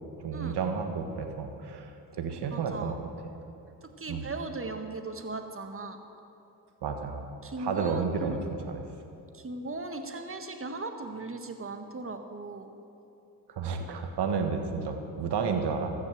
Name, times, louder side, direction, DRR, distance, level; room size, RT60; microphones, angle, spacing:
voice 1, 0.2-3.1 4.1-4.3 6.8-7.2 7.6-8.4 8.7-8.8 13.5-15.9, right 5 dB, 60° right, 5 dB, 1.6 m, -31 dB
voice 2, 2.5-3.0 3.8-6.0 7.4-8.4 9.3-12.7, right 3 dB, 30° right, 6 dB, 1.4 m, -38 dB
14.5 x 6.5 x 7.4 m, 2.7 s
supercardioid pair, 50°, 46 cm